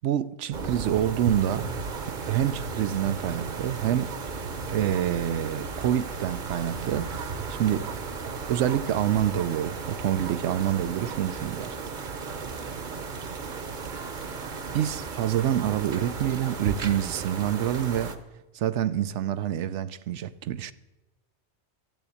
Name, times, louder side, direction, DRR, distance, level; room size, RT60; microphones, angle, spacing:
voice 1, 0.0-1.7 2.1-4.1 4.7-7.1 7.5-7.9 8.5-11.8 14.7-18.1 18.5-20.7, right 11 dB, 85° right, 1.0 m, -27 dB
sound 1, 0.5-18.2, right 4 dB, 45° right, 1.0 m, -35 dB
12.5 x 8.0 x 8.5 m
omnidirectional pair, 1.2 m